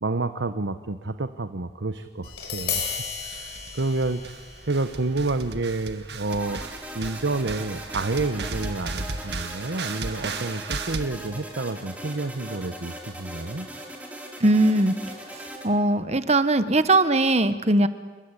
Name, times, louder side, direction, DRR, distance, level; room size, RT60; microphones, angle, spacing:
voice 1, 0.0-2.9 3.7-4.2 4.7-6.6 6.9-13.7, right 3 dB, 85° right, 10 dB, 1.0 m, -29 dB
Tap, 2.2-8.4, left 6 dB, 60° left, 5.9 m, -36 dB
sound 1, 2.6-2.9 3.3-4.4 4.7-11.0, right 3 dB, 65° right, 1.8 m, -35 dB
sound 2, 6.3-15.7, right 1 dB, 10° right, 3.6 m, -40 dB
voice 2, 14.4-14.9 15.3-17.9, right 2 dB, 35° right, 12 dB, 1.3 m, -20 dB
29.5 x 22.0 x 8.4 m, 1.3 s
head